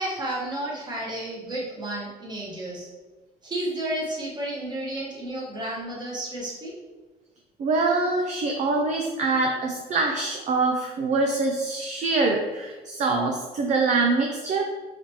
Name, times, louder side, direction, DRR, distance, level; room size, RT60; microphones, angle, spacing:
voice 1, 0.0-2.9 3.4-6.7, right 1 dB, 25° right, -4 dB, 1.3 m, -32 dB
voice 2, 7.6-14.6, right 3 dB, 45° right, 2 dB, 0.4 m, -24 dB
4.1 x 2.8 x 3.0 m, 1.3 s
cardioid pair, 110°, 17 cm